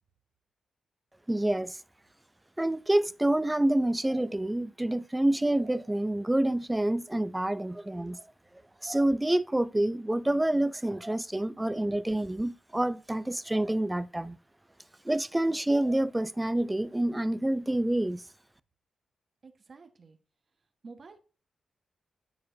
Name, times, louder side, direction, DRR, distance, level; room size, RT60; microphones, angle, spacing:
voice 1, 1.3-1.8 2.6-8.2 8.8-14.4 15.0-18.2, right 1 dB, 15° right, 0.5 m, -27 dB
voice 2, 19.4-20.2 20.8-21.2, right 4 dB, 55° right, 1.4 m, -49 dB
12.0 x 4.6 x 2.7 m
supercardioid pair, 50°, 0 cm